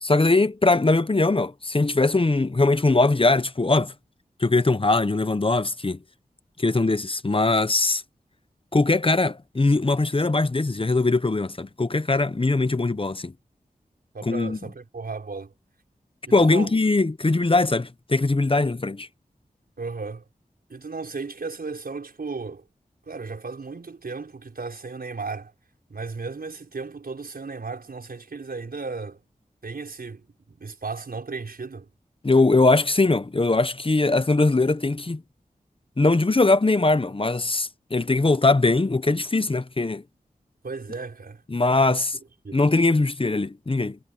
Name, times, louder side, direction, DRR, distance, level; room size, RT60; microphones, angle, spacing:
voice 1, 0.0-3.9 4.4-6.0 6.6-8.0 8.7-13.3 14.2-14.6 16.3-19.1 32.2-35.2 36.0-40.0 41.5-42.2 42.5-44.0, left 3 dB, 35° left, 1.0 m, -21 dB
voice 2, 14.1-15.5 16.2-16.7 19.8-20.2 20.7-22.6 23.1-25.5 25.9-29.2 29.6-31.9 40.6-41.4 41.9-42.0 42.4-42.6, right 4 dB, 80° right, 6.0 m, -35 dB
cardioid pair, 40°, 15 cm